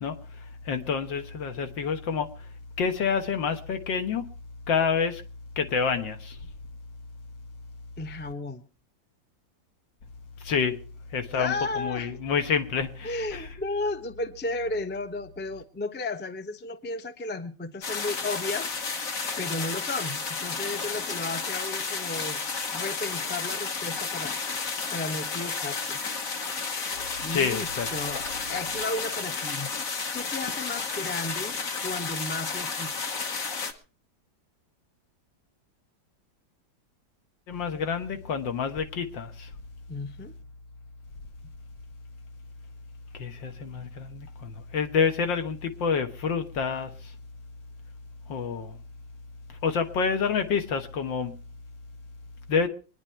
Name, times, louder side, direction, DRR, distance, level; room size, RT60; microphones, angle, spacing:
voice 1, 0.0-2.5 2.8-4.3 4.7-5.2 5.6-6.4 10.4-10.8 11.1-13.5 27.3-27.9 37.5-39.5 43.1-47.1 48.3-48.8 49.5-51.4 52.5-52.7, left 6 dB, 75° left, 2.0 m, -28 dB
voice 2, 8.0-8.6 11.3-12.1 13.0-18.7 19.4-22.4 22.7-24.3 24.9-26.0 27.2-29.7 30.1-31.6 31.8-33.2 39.9-40.3, left 2 dB, 15° left, 0.3 m, -34 dB
sound 1, 17.8-33.7, left 4 dB, 50° left, 1.6 m, -32 dB
24.5 x 10.0 x 4.5 m
omnidirectional pair, 2.1 m